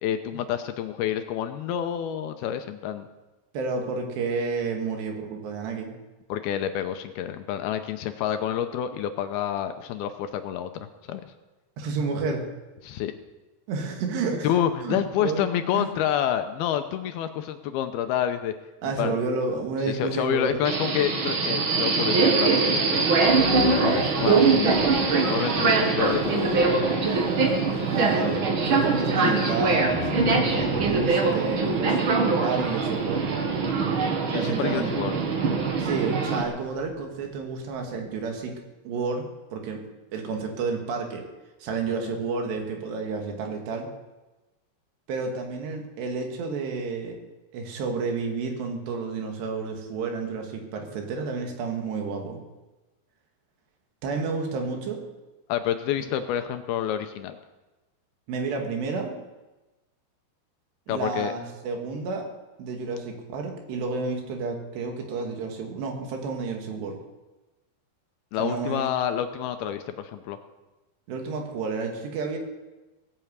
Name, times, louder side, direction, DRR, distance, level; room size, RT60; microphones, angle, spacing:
voice 1, 0.0-3.1 6.3-11.3 12.8-13.1 14.4-18.5 18.8-19.2 19.9-23.1 24.2-27.0 34.3-35.2 42.0-42.1 55.5-57.4 60.9-61.3 68.3-70.4, left 10 dB, 80° left, 8 dB, 2.5 m, -28 dB
voice 2, 3.5-5.9 11.8-12.5 13.7-14.5 14.8-15.4 15.7-15.9 18.8-20.5 25.3-25.7 27.9-32.1 32.4-33.4 34.3-34.9 35.8-38.6 38.9-39.8 40.1-41.3 41.6-43.9 45.1-47.2 47.5-52.4 54.0-55.0 58.3-59.2 60.9-62.3 62.6-67.0 68.4-68.9 71.1-72.4, right 4 dB, 80° right, 3 dB, 4.1 m, -30 dB
Subway metro underground, 20.6-36.4, right 4 dB, 60° right, 1.3 m, -23 dB
sound 1, 23.2-37.4 37.9-38.0, left 5 dB, 35° left, 1.9 m, -35 dB
17.5 x 9.2 x 8.1 m, 1.1 s
omnidirectional pair, 4.8 m